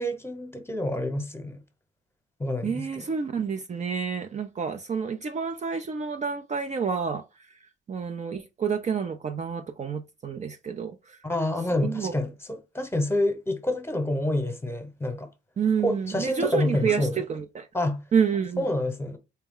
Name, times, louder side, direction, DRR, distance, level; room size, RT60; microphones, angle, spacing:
voice 1, 0.0-1.6 2.4-2.9 11.2-15.3 15.8-17.2 17.7-18.0 18.6-19.2, left 1 dB, 10° left, 1.0 m, -28 dB
voice 2, 2.6-7.2 7.9-11.2 11.8-12.1 15.6-17.7 18.1-18.7, right 6 dB, 35° right, 0.5 m, -29 dB
4.4 x 2.2 x 3.7 m
cardioid pair, 90°, 20 cm